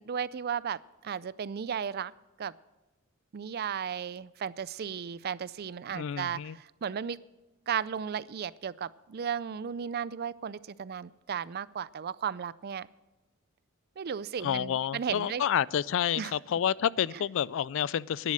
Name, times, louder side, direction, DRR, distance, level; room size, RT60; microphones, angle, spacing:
voice 1, 0.0-2.1 2.4-2.5 3.3-7.2 7.7-12.9 14.0-15.4 16.2-16.3, right 7 dB, 50° right, 0.4 m, -35 dB
voice 2, 5.9-6.6 14.4-18.3, left 9 dB, 65° left, 0.3 m, -29 dB
11.5 x 11.0 x 6.3 m
head